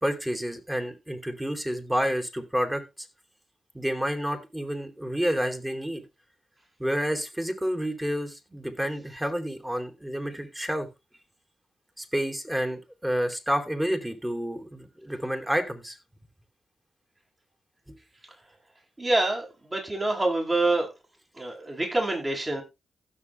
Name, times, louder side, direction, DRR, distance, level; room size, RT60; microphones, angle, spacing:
voice 1, 0.0-2.8 3.7-6.0 6.8-10.9 12.0-16.0 17.9-18.0, equal, 10° right, 3.4 m, -29 dB
voice 2, 19.0-20.9 21.4-22.6, right 2 dB, 30° right, 8.0 m, -26 dB
16.0 x 6.9 x 3.4 m
supercardioid pair, 50°, 0 cm